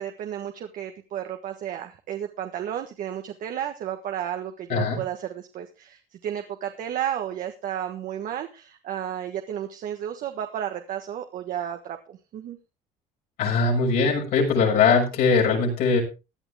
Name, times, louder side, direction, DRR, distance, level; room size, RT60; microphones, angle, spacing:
voice 1, 0.0-12.6, right 10 dB, 60° right, 5 dB, 1.5 m, -32 dB
voice 2, 4.7-5.0 13.4-16.0, left 4 dB, 70° left, 0 dB, 6.4 m, -21 dB
17.0 x 11.0 x 3.5 m, 0.30 s
cardioid pair, 120°, 16 cm